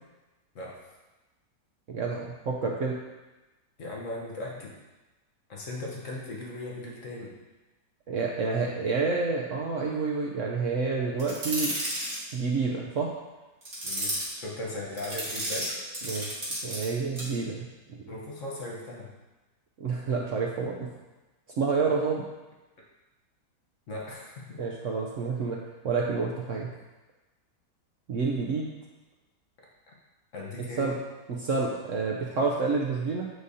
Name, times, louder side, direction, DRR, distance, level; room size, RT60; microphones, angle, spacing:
voice 1, 0.5-0.9 3.8-4.8 5.5-7.4 13.8-16.1 18.1-19.1 23.9-24.6 29.6-29.9 30.3-31.0, left 2 dB, 55° left, -3 dB, 1.2 m, -38 dB
voice 2, 1.9-3.0 8.1-11.7 12.3-13.1 16.1-17.7 19.8-20.9 21.6-22.3 24.6-25.6 25.8-26.7 28.1-28.7 30.8-31.0 31.3-33.3, right 4 dB, 60° right, -1 dB, 0.8 m, -29 dB
sound 1, 11.2-12.2 13.6-14.3 15.0-16.9 17.2-17.3, right 1 dB, 35° right, 1.8 m, -32 dB
8.1 x 5.0 x 2.7 m, 1.1 s
omnidirectional pair, 1.8 m